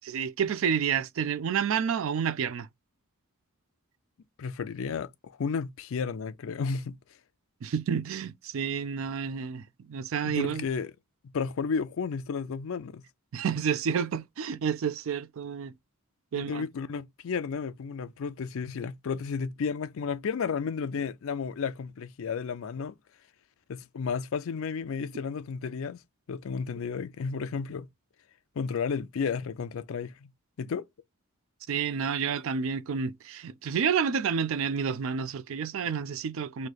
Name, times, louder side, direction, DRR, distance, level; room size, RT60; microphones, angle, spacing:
voice 1, 0.1-2.7 7.6-10.6 13.3-15.7 16.3-16.6 31.7-36.7, right 7 dB, 60° right, 0.4 m, -29 dB
voice 2, 4.4-7.0 10.2-10.9 11.3-13.0 16.3-23.0 23.7-26.0 26.3-27.9 28.6-30.3 30.6-30.9, left 5 dB, 65° left, 0.4 m, -32 dB
3.2 x 2.7 x 3.9 m
head